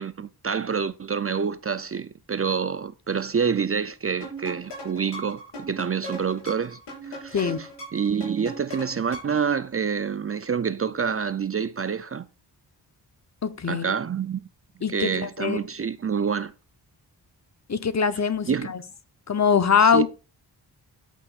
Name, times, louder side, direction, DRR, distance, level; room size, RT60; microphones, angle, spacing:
voice 1, 0.0-6.8 7.1-12.3 13.7-14.4 14.9-16.5 18.5-18.7 19.8-20.1, right 6 dB, 35° right, 0.5 m, -27 dB
sound 1, 4.2-9.5, right 1 dB, 80° left, 5.4 m, -39 dB
voice 2, 13.4-13.9 14.8-15.6 17.7-18.8 19.3-20.1, left 6 dB, 40° left, 0.9 m, -22 dB
14.0 x 6.2 x 2.5 m
cardioid pair, 70°, 42 cm